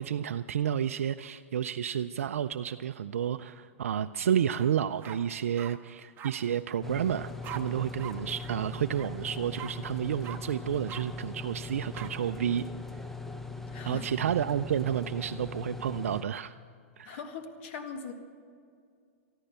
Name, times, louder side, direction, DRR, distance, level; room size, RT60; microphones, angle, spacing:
voice 1, 0.0-12.6 13.8-16.5 17.0-17.2, right 9 dB, 80° right, 10 dB, 0.4 m, -31 dB
sound 1, 4.5-4.7 5.0-5.7 6.2-6.3 7.4-7.6 8.0-8.1 8.4-8.6 8.9-9.1 9.6-9.7 10.2-10.4 10.9-11.0 11.9-12.1, right 12 dB, 30° right, 1.0 m, -42 dB
sound 2, 6.8-16.2, left 3 dB, 5° left, 0.7 m, -40 dB
voice 2, 13.7-14.0 17.0-18.1, left 6 dB, 55° left, 7 dB, 1.7 m, -40 dB
13.5 x 12.0 x 6.7 m, 2.3 s
hypercardioid pair, 120°, 7 cm